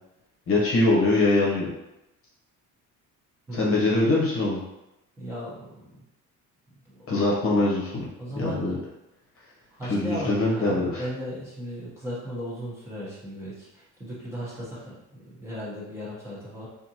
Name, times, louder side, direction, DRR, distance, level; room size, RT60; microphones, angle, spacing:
voice 1, 0.5-1.7 3.5-4.6 7.1-8.1 8.4-8.8 9.8-11.0, left 2 dB, 40° left, -5 dB, 1.0 m, -23 dB
voice 2, 3.5-3.9 5.2-6.0 6.9-7.1 8.2-8.8 9.7-16.7, equal, 10° right, -9 dB, 1.0 m, -36 dB
4.2 x 2.6 x 2.9 m, 0.91 s
cardioid pair, 165°, 32 cm